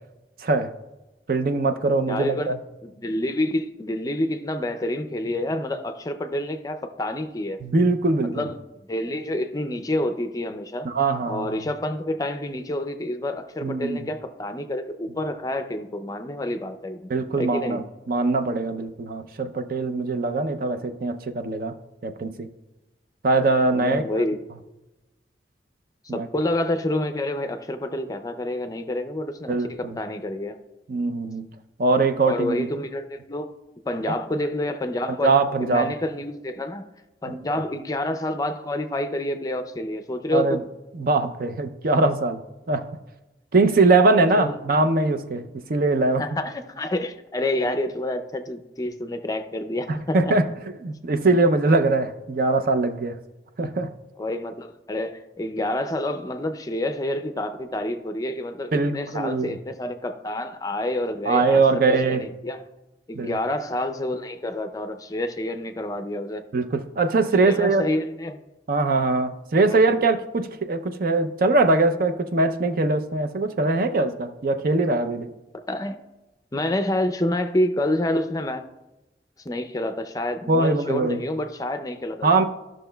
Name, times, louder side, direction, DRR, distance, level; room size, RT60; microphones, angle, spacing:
voice 1, 1.3-2.6 7.6-8.4 10.8-11.5 13.6-14.0 17.1-21.7 22.0-22.5 23.2-24.0 26.1-26.3 29.5-29.9 30.9-31.5 31.8-32.7 35.2-35.9 37.5-37.6 40.3-40.6 40.9-42.4 42.7-42.8 43.5-45.4 45.7-46.2 50.1-50.5 50.8-53.2 53.6-53.9 58.7-59.5 61.3-62.3 63.1-63.4 66.5-67.8 68.7-75.3 80.5-81.2 82.2-82.4, right 3 dB, 55° right, 0.5 m, -22 dB
voice 2, 2.1-2.5 2.8-7.6 8.3-8.6 8.9-10.9 11.3-17.1 17.4-17.8 23.7-24.4 26.1-30.6 32.2-33.5 33.9-35.3 35.6-36.8 37.2-40.7 44.2-44.6 46.2-50.3 54.2-61.6 62.1-62.6 63.1-66.4 67.4-68.4 69.7-69.8 75.7-76.0 76.5-78.6 79.5-82.3, left 1 dB, 20° left, 0.5 m, -28 dB
13.5 x 6.2 x 2.2 m
head